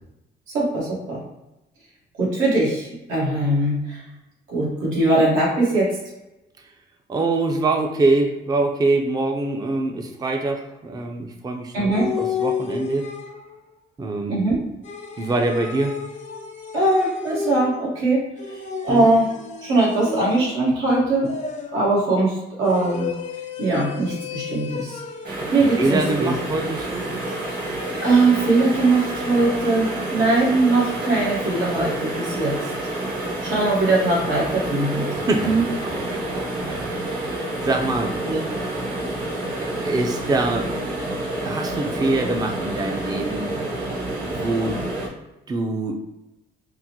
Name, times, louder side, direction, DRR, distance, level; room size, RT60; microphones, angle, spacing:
voice 1, 0.5-1.2 2.2-4.0 4.5-6.0 11.7-12.1 14.3-14.6 16.7-19.3 19.6-21.3 21.7-23.1 23.6-25.0 25.5-26.3 28.0-32.6 33.4-35.1 35.4-35.6 38.2-38.4, right 2 dB, 90° right, -5 dB, 1.4 m, -21 dB
voice 2, 7.1-13.1 14.0-14.4 15.2-15.9 18.9-19.1 25.7-27.1 35.2-35.6 35.8-38.1 39.6-40.7 41.4-43.5 44.2-44.8 45.5-46.0, right 2 dB, 20° right, 3 dB, 0.4 m, -24 dB
sound 1, 11.9-13.6 14.8-17.9 18.4-20.7 21.2-22.0 22.6-25.4 25.8-29.4, left 6 dB, 35° left, 0.5 m, -33 dB
sound 2, 25.2-45.1, right 1 dB, 50° right, 1.1 m, -29 dB
3.7 x 2.1 x 2.8 m, 0.97 s
cardioid pair, 90°, 20 cm